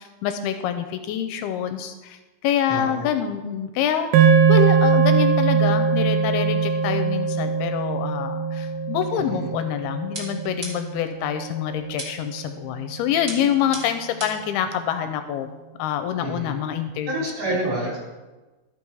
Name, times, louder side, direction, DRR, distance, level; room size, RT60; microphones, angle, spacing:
voice 1, 0.0-15.5 15.8-17.1, left 9 dB, 80° left, 9 dB, 2.4 m, -26 dB
voice 2, 2.7-3.1 9.1-9.5 16.2-16.5 17.0-18.0, right 1 dB, 55° right, -5 dB, 4.8 m, -28 dB
sound 1, 4.1-12.5, right 6 dB, 75° right, 2.3 m, -21 dB
sound 2, 10.1-11.1 12.0-12.4 13.3-14.5, right 1 dB, 30° right, 1.1 m, -36 dB
13.5 x 5.8 x 4.7 m, 1.2 s
omnidirectional pair, 4.7 m